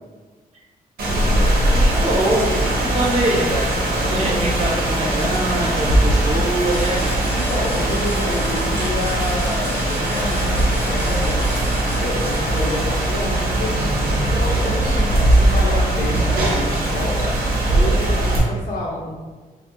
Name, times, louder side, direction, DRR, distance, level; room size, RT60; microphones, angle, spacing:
Rain, 1.0-18.4, right 1 dB, 75° right, 0.6 m, -20 dB
voice 1, 1.3-3.7 4.0-7.1, right 1 dB, 40° right, -3 dB, 0.7 m, -24 dB
sound 1, 6.7-12.3, left 1 dB, 10° left, 0.5 m, -38 dB
voice 2, 7.3-11.6 12.0-13.9 14.2-17.3 17.7-19.2, left 1 dB, 60° left, -4 dB, 0.7 m, -28 dB
2.6 x 2.0 x 2.4 m, 1.4 s
cardioid pair, 80°, 16 cm